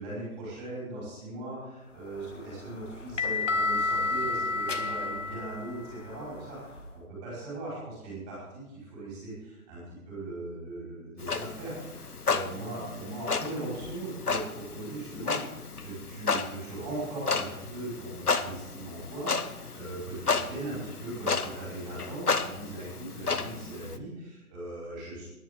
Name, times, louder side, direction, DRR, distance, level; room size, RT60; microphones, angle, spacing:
voice 1, 0.0-25.3, right 2 dB, 20° right, -7 dB, 5.3 m, -39 dB
sound 1, 2.1-6.9, left 3 dB, 55° left, 1.4 m, -31 dB
Clock, 11.2-24.0, left 4 dB, 90° left, 1.0 m, -33 dB
18.0 x 10.5 x 3.8 m, 1.0 s
figure-of-eight pair, 145°, 44 cm